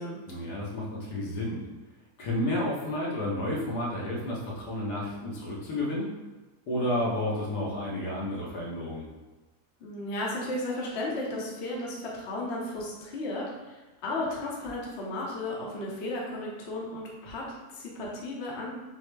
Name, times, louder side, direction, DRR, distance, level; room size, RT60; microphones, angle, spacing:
voice 1, 0.3-1.6 2.2-6.1 6.7-9.0, left 1 dB, 75° left, -4 dB, 1.5 m, -31 dB
voice 2, 9.8-18.7, left 1 dB, 50° left, -3 dB, 0.9 m, -34 dB
6.2 x 2.1 x 3.2 m, 1.2 s
omnidirectional pair, 1.8 m